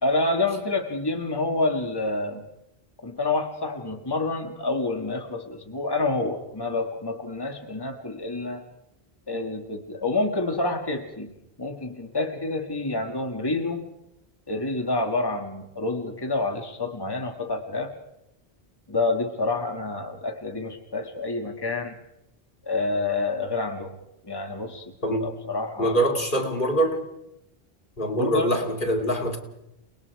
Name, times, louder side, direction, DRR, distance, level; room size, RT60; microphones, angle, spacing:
voice 1, 0.0-2.4 3.0-8.6 9.3-11.3 11.6-13.8 14.5-17.9 18.9-21.9 22.6-24.0 24.3-26.1 28.1-28.5, left 2 dB, 20° left, 3 dB, 1.9 m, -28 dB
voice 2, 25.8-27.0 28.0-29.4, right 1 dB, 55° left, 3 dB, 2.6 m, -24 dB
30.0 x 20.0 x 4.8 m, 0.85 s
omnidirectional pair, 1.1 m